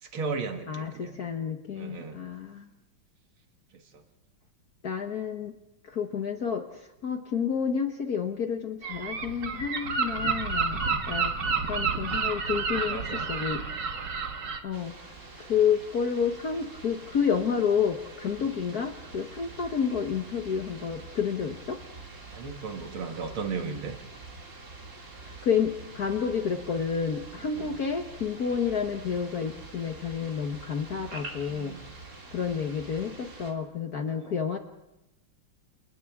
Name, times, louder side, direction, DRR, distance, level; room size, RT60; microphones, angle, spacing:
voice 1, 0.0-1.2 1.7-2.2 3.7-3.8 12.5-12.6 12.9-13.3 18.4-18.5 22.3-23.9 27.4-27.8 31.5-32.0 34.0-34.3, right 4 dB, 80° right, 4 dB, 2.4 m, -36 dB
voice 2, 0.7-2.6 4.8-5.5 5.9-6.7 7.0-10.8 11.1-11.3 11.7-13.6 14.6-15.1 15.4-21.8 25.4-31.7 32.3-34.6, left 7 dB, 50° left, 4 dB, 1.5 m, -30 dB
Gull seagull, 8.8-14.6, right 5 dB, 55° right, 2.1 m, -30 dB
sound 1, 14.7-33.5, right 3 dB, 35° right, 2.6 m, -46 dB
29.5 x 29.0 x 3.6 m, 0.91 s
omnidirectional pair, 2.3 m